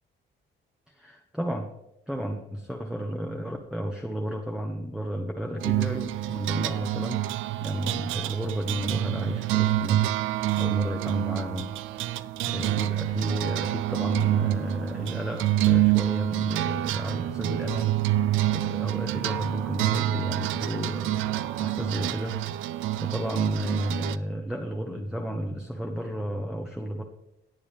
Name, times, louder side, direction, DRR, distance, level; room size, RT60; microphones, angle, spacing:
voice 1, 0.9-1.7 2.1-11.7 12.5-21.2 21.6-22.4 23.0-27.0, equal, 5° right, 1 dB, 1.1 m, -32 dB
sound 1, 5.6-24.2, right 14 dB, 85° right, 0.5 m, -27 dB
17.5 x 7.2 x 3.4 m, 0.84 s
cardioid pair, 90°, 20 cm